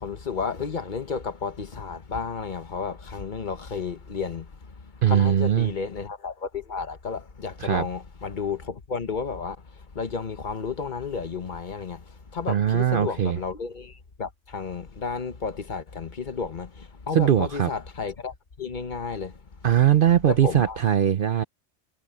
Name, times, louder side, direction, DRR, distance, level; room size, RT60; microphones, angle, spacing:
voice 1, 0.0-4.7 5.1-9.6 9.9-19.4 20.3-20.8, left 5 dB, 40° left, 1.2 m, -32 dB
voice 2, 5.0-5.7 7.6-7.9 12.5-13.4 17.1-17.7 19.6-21.4, right 10 dB, 55° right, 0.7 m, -20 dB
omnidirectional pair, 1.2 m